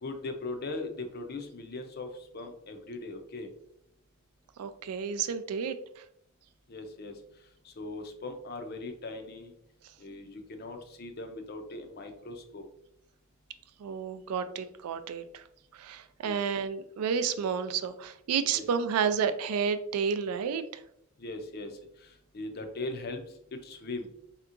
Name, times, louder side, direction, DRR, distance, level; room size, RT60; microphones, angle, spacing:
voice 1, 0.0-3.5 6.7-7.1 7.6-9.5 10.0-12.6 16.2-16.4 18.5-18.6 21.2-23.2 23.5-24.1, left 2 dB, 45° left, 6 dB, 0.4 m, -39 dB
voice 2, 4.6-5.8 13.8-15.4 15.7-20.6, right 6 dB, 90° right, 11 dB, 0.3 m, -31 dB
3.4 x 2.8 x 2.4 m, 0.74 s
head